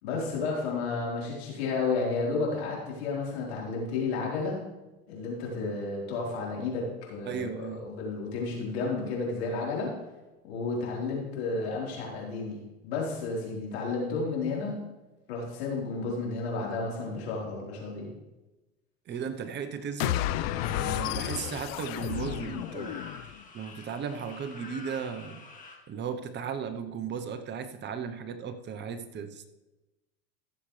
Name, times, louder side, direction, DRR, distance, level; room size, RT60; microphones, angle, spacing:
voice 1, 0.0-4.6 5.1-9.9 10.5-14.8 15.3-18.1, left 3 dB, 85° left, -3 dB, 4.1 m, -32 dB
voice 2, 7.2-7.9 19.1-20.2 20.7-23.0 23.5-25.4 25.9-29.5, right 6 dB, 35° right, 9 dB, 0.9 m, -36 dB
sound 1, 20.0-23.4, left 14 dB, 70° left, 0.6 m, -31 dB
sound 2, 20.2-25.8, left 3 dB, 25° left, 2.0 m, -47 dB
15.0 x 7.5 x 3.3 m, 1.1 s
supercardioid pair, 115°, 31 cm